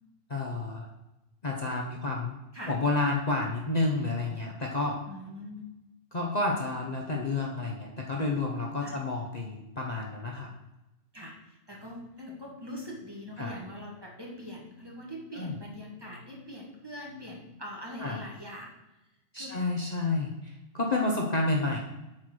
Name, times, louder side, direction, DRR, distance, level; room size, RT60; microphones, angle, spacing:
voice 1, 0.3-0.9 1.4-2.4 2.7-5.0 6.1-10.5 13.4-13.6 15.4-15.5 18.0-18.2 19.3-21.8, left 2 dB, 35° left, 0 dB, 1.1 m, -30 dB
voice 2, 5.1-5.6 8.8-9.0 11.1-18.7 19.4-19.6 21.0-21.1, left 1 dB, 20° right, -2 dB, 1.9 m, -42 dB
8.6 x 4.6 x 6.3 m, 0.97 s
omnidirectional pair, 1.2 m